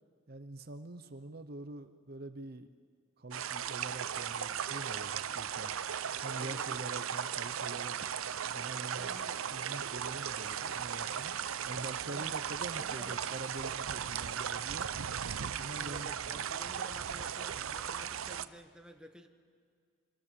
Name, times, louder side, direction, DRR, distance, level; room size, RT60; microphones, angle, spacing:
voice 1, 0.3-2.7 3.2-5.7 6.2-8.0 8.5-9.2 9.5-11.3 11.7-14.9 15.4-16.4, right 2 dB, 50° right, 10 dB, 0.8 m, -45 dB
sound 1, 3.3-18.5, right 8 dB, 80° right, 0.6 m, -37 dB
voice 2, 6.4-7.0 9.0-9.4 12.1-13.2 15.7-19.3, equal, 5° right, 5 dB, 1.3 m, -52 dB
26.0 x 22.0 x 6.9 m, 2.1 s
head